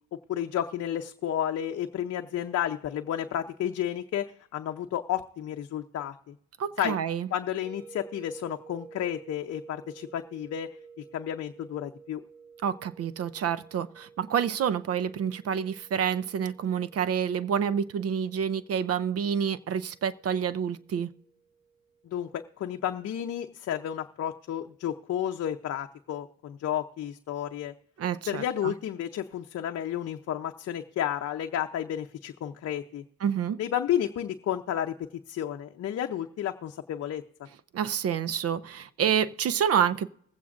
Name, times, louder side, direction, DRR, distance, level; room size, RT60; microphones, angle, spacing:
voice 1, 0.3-6.3 6.8-7.0 7.3-10.7 11.1-12.2 22.0-27.7 28.3-33.0 33.6-34.9 35.3-37.2, left 10 dB, 55° left, 0.6 m, -32 dB
voice 2, 6.6-7.3 12.6-21.1 28.0-28.7 33.2-33.6 37.7-40.1, right 8 dB, 55° right, 0.5 m, -28 dB
sound 1, 7.6-22.6, right 6 dB, 75° right, 1.8 m, -53 dB
21.0 x 8.3 x 2.5 m
cardioid pair, 90°, 30 cm